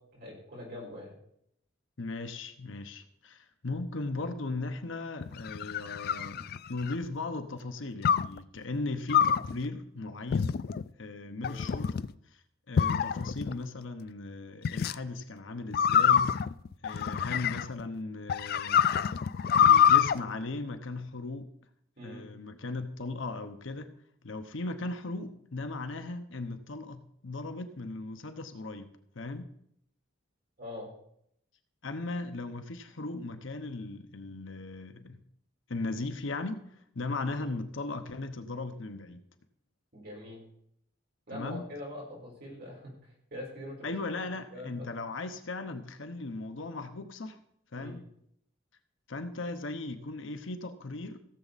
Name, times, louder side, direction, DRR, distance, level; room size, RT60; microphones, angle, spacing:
voice 1, 0.1-1.1 11.2-11.7 22.0-22.2 30.6-30.9 39.9-40.4 41.3-43.9 44.5-44.9 47.8-47.9, left 1 dB, 50° right, -3 dB, 4.8 m, -43 dB
voice 2, 2.0-10.6 11.0-12.0 12.7-16.4 16.8-19.2 19.5-21.5 22.0-23.9 24.2-28.9 29.1-29.5 31.8-35.2 35.7-36.6 36.9-39.2 41.3-41.7 43.8-47.4 47.7-48.0 49.1-51.2, left 3 dB, 65° left, 8 dB, 0.9 m, -37 dB
sound 1, 5.2-7.0 8.0-8.4 9.1-9.5 10.3-10.8 11.4-12.1 12.8-13.5 14.6-14.9 15.7-17.8 18.3-20.1, left 8 dB, 45° left, 0.3 m, -25 dB
16.5 x 7.2 x 4.1 m, 0.71 s
head